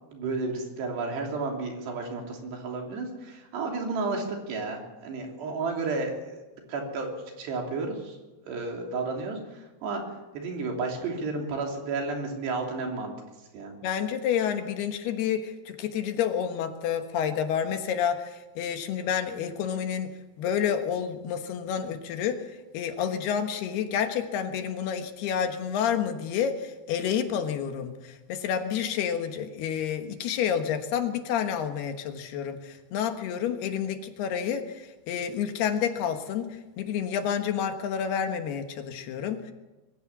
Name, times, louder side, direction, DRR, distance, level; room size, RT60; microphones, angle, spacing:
voice 1, 0.1-6.2 6.7-7.1 7.4-8.1 8.4-10.0 10.4-13.1 13.5-13.7, right 3 dB, 75° right, 1 dB, 5.4 m, -32 dB
voice 2, 13.8-20.1 20.4-22.4 22.7-36.5 36.8-39.5, left 8 dB, 70° left, 6 dB, 3.3 m, -29 dB
23.0 x 15.5 x 7.4 m, 1.1 s
omnidirectional pair, 4.9 m